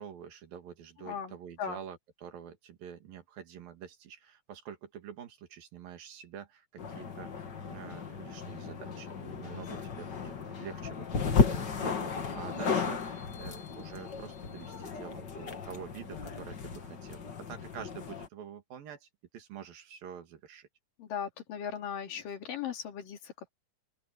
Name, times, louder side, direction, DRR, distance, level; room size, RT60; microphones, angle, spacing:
voice 1, 0.0-7.3 7.7-19.1 19.3-20.7, right 8 dB, 90° right, 4.1 m, -47 dB
voice 2, 1.0-1.8 21.0-23.5, left 8 dB, 75° left, 4.3 m, -38 dB
sound 1, 6.8-18.3, left 5 dB, 40° left, 1.8 m, -34 dB
open air
omnidirectional pair, 3.9 m